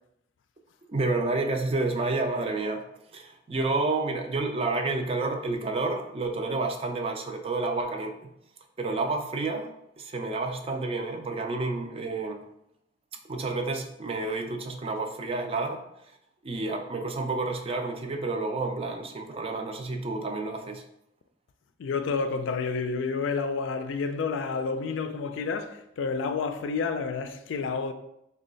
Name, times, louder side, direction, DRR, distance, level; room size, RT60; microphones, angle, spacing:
voice 1, 0.9-2.8 3.1-8.3 8.8-9.7 10.0-12.4 13.3-15.8 16.4-20.8, right 3 dB, 30° right, 0.4 m, -30 dB
voice 2, 21.8-27.9, left 4 dB, 90° left, 0.3 m, -29 dB
3.1 x 2.2 x 3.8 m
head